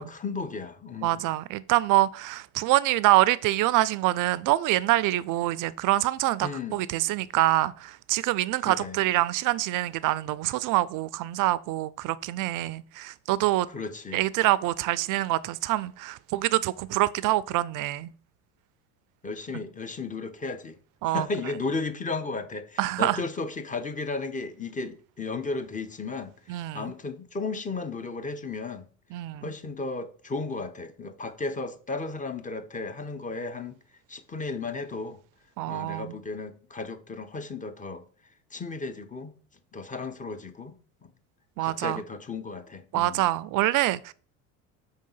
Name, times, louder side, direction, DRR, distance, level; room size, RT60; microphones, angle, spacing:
voice 1, 0.0-1.2 6.4-6.8 8.6-9.0 13.7-14.3 19.2-20.8 21.0-28.9 29.4-33.8 34.1-35.2 35.7-38.0 38.5-39.3 39.7-40.8 41.0-41.1 41.6-43.3, left 3 dB, 20° left, 0.8 m, -34 dB
voice 2, 1.0-13.7 14.1-18.1 21.0-21.3 22.8-23.2 26.5-26.9 29.1-29.5 35.6-36.1 41.6-42.0 42.9-44.1, right 16 dB, 50° right, 0.5 m, -25 dB
5.0 x 3.7 x 5.5 m
hypercardioid pair, 85°, 43 cm